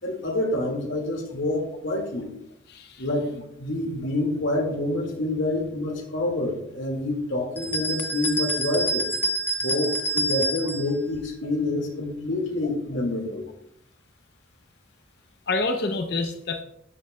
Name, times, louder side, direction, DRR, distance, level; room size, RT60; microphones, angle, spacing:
voice 1, 0.0-2.3 3.0-9.1 9.6-13.5, left 2 dB, 80° left, 1 dB, 2.0 m, -27 dB
voice 2, 2.7-3.0 8.5-8.6 15.5-16.6, left 3 dB, 55° left, 6 dB, 0.6 m, -28 dB
sound 1, 7.6-10.9, right 1 dB, 10° left, 0.5 m, -27 dB
12.5 x 7.7 x 2.2 m, 0.78 s
head